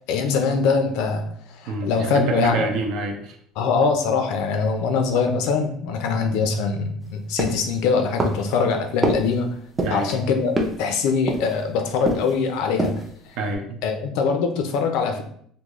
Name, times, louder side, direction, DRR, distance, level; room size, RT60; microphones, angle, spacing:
voice 1, 0.1-1.3 1.6-2.7 3.6-9.5 9.9-13.0 13.8-15.2, left 5 dB, 70° left, 5 dB, 0.5 m, -23 dB
voice 2, 1.7-3.4 9.8-10.1 13.4-13.8, right 2 dB, 60° right, 4 dB, 0.6 m, -26 dB
sound 1, 7.4-7.8 8.2-8.6 9.0-9.3 9.8-10.1 10.6-10.9 11.3-11.7 12.0-12.4 12.7-13.1 13.5-13.6, right 1 dB, 15° right, 0.5 m, -25 dB
3.6 x 2.2 x 3.0 m, 0.64 s
cardioid pair, 160°, 0 cm